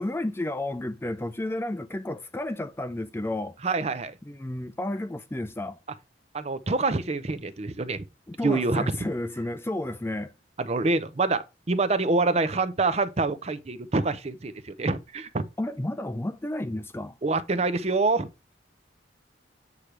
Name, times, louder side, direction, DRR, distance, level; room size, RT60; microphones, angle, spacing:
voice 1, 0.0-3.6 4.3-5.8 8.3-10.3 15.6-17.2, left 1 dB, 15° left, 0.5 m, -32 dB
voice 2, 3.6-4.2 6.3-8.0 8.4-8.8 10.6-15.4 17.2-18.3, right 3 dB, 35° right, 0.6 m, -26 dB
8.3 x 3.3 x 6.0 m
head